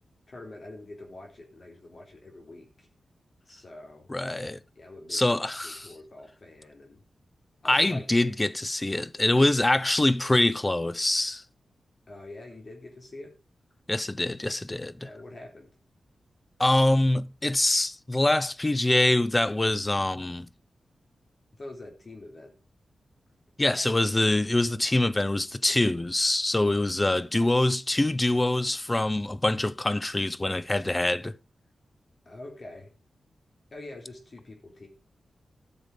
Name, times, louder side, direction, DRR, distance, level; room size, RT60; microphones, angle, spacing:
voice 1, 0.3-2.9 3.5-4.1 4.8-5.3 5.6-7.0 7.6-8.0 12.1-13.3 14.8-15.7 21.5-22.5 32.3-32.9 33.7-34.9, left 2 dB, 40° left, 4.2 m, -45 dB
voice 2, 4.1-4.6 5.1-5.9 7.7-11.4 13.9-14.9 16.6-20.5 23.6-31.3, left 1 dB, 15° left, 0.6 m, -24 dB
13.5 x 7.1 x 5.2 m
wide cardioid pair, 120°, 0 cm